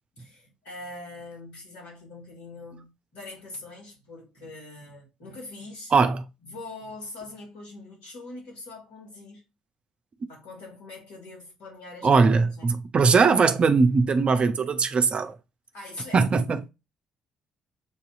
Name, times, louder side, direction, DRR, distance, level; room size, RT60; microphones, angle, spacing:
voice 1, 0.2-5.9 6.4-9.4 10.3-12.7 15.7-16.3, left 2 dB, 70° left, 2.3 m, -43 dB
voice 2, 5.9-6.2 12.0-15.4 16.1-16.6, right 4 dB, 40° right, 0.6 m, -20 dB
6.9 x 2.8 x 2.5 m
figure-of-eight pair, 45°, 3 cm